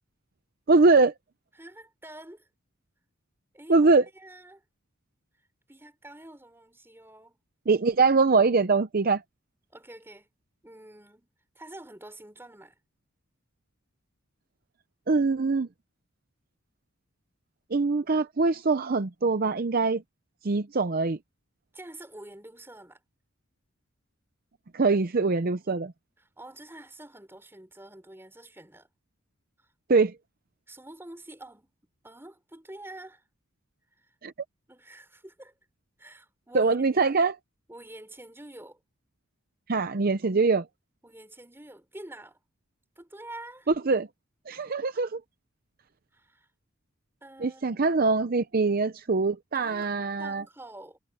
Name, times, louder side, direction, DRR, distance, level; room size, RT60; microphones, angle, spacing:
voice 1, 0.7-1.1 3.7-4.0 7.7-9.2 15.1-15.7 17.7-20.0 20.4-21.2 24.7-25.9 29.9-30.1 34.2-34.3 36.5-37.3 39.7-40.7 43.7-44.1 44.5-45.2 47.4-50.4, right 3 dB, 45° right, 0.6 m, -23 dB
voice 2, 1.6-2.5 3.5-3.8 4.1-4.6 5.7-7.4 9.7-10.3 10.6-11.3 11.5-12.8 21.7-23.0 26.2-28.9 30.7-31.7 32.0-33.2 34.0-34.1 34.7-35.5 36.0-37.2 37.7-38.8 41.0-42.4 43.0-43.7 46.1-46.5 47.2-47.8 49.5-49.9 50.2-51.0, right 1 dB, 10° right, 4.3 m, -47 dB
head